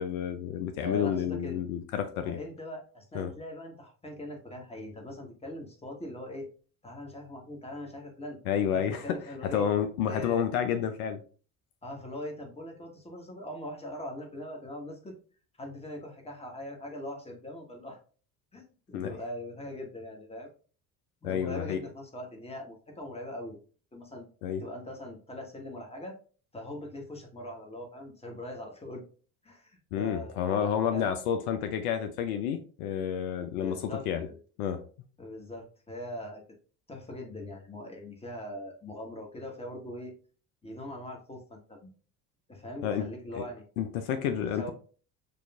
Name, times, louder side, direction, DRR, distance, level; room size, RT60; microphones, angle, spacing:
voice 1, 0.0-2.4 3.1-3.3 8.5-11.2 18.9-19.1 21.2-21.8 24.4-24.6 29.9-34.3 34.6-34.8 42.8-43.1 43.3-43.4 43.8-44.7, left 8 dB, 70° left, 8 dB, 0.5 m, -30 dB
voice 2, 0.8-1.6 2.3-6.5 6.8-8.4 8.7-9.7 10.1-10.5 11.8-15.1 15.6-18.0 18.5-20.5 21.2-23.6 23.9-24.3 24.6-26.2 26.5-29.0 29.4-31.1 33.5-34.4 35.2-36.4 36.9-40.1 40.6-41.9 42.5-43.6 44.3-44.7, left 1 dB, 15° left, 1 dB, 1.3 m, -41 dB
6.7 x 2.4 x 2.4 m, 0.40 s
hypercardioid pair, 55°, 45 cm